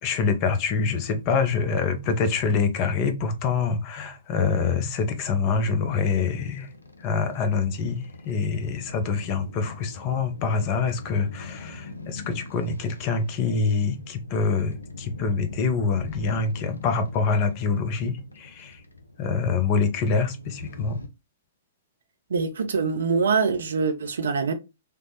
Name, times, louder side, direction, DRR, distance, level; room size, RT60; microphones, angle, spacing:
voice 1, 0.0-6.7 7.0-18.8 19.2-21.0, left 5 dB, 35° left, 0.6 m, -25 dB
sound 1, 5.7-21.1, left 2 dB, 85° left, 0.4 m, -43 dB
voice 2, 22.3-24.5, right 5 dB, 70° right, 0.5 m, -24 dB
3.3 x 2.0 x 2.8 m
figure-of-eight pair, 115°, 0 cm